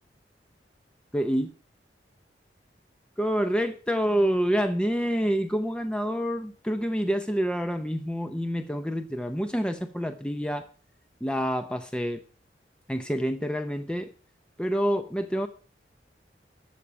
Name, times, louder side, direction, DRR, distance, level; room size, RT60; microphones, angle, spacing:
voice 1, 1.1-1.5 3.2-10.7 11.2-12.2 12.9-14.1 14.6-15.5, equal, 5° left, 7 dB, 0.7 m, -27 dB
14.0 x 4.9 x 8.7 m, 0.39 s
head